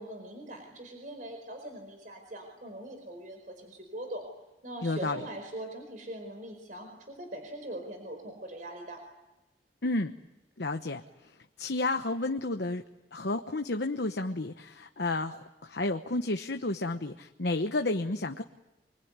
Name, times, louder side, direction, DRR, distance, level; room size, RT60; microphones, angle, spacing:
voice 1, 0.0-4.3 4.6-9.0, right 1 dB, 45° right, 5 dB, 4.7 m, -42 dB
voice 2, 4.8-5.2 9.8-10.1 10.6-11.0 11.6-12.8 13.1-18.4, left 2 dB, 65° left, 6 dB, 1.0 m, -31 dB
25.5 x 23.5 x 9.6 m, 1.0 s
head